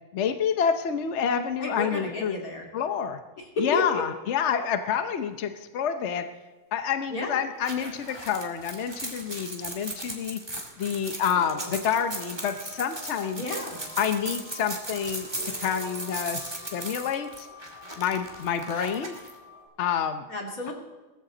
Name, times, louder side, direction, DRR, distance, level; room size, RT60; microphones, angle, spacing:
voice 1, 0.1-2.3 2.7-3.2 3.6-6.2 6.7-10.4 10.8-13.4 14.0-17.5 18.0-19.1 19.8-20.3 20.7-20.8, left 7 dB, 60° left, 8 dB, 0.7 m, -28 dB
voice 2, 1.6-2.6 3.4-4.0 7.1-7.4 13.3-13.8 20.3-20.7, left 2 dB, 45° left, 0 dB, 2.9 m, -31 dB
sound 1, 7.6-19.3, right 1 dB, 15° right, 1.8 m, -37 dB
sound 2, 11.2-19.7, left 1 dB, 90° left, 6.9 m, -47 dB
18.5 x 14.5 x 3.9 m, 1.2 s
omnidirectional pair, 2.2 m